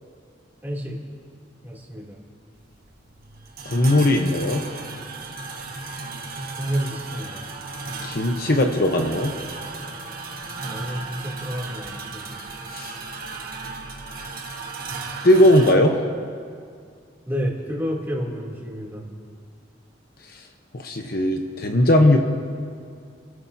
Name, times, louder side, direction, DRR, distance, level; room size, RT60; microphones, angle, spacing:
voice 1, 0.6-1.0 1.6-2.2 6.6-7.4 10.4-12.4 17.3-19.0, equal, 10° right, -5 dB, 3.0 m, -30 dB
sound 1, 2.6-15.7, right 3 dB, 50° right, 1.4 m, -35 dB
voice 2, 3.6-4.6 8.0-9.3 12.7-12.9 15.2-16.0 20.7-22.2, left 1 dB, 50° left, 3 dB, 1.0 m, -18 dB
29.5 x 14.5 x 2.8 m, 2.2 s
head